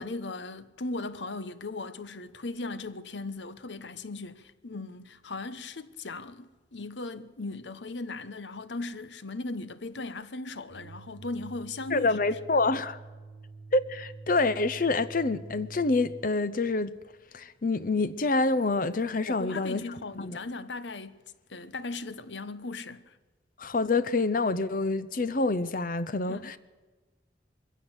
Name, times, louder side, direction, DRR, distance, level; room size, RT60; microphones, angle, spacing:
voice 1, 0.0-12.2 19.2-21.2 21.5-23.2 26.3-26.5, left 3 dB, 80° left, 1.0 m, -38 dB
sound 1, 10.7-16.3, right 3 dB, 80° right, 1.2 m, -46 dB
voice 2, 11.9-13.0 13.7-17.0 17.3-19.8 20.2-20.4 23.6-26.6, left 3 dB, 50° left, 0.7 m, -27 dB
22.5 x 16.0 x 8.1 m
head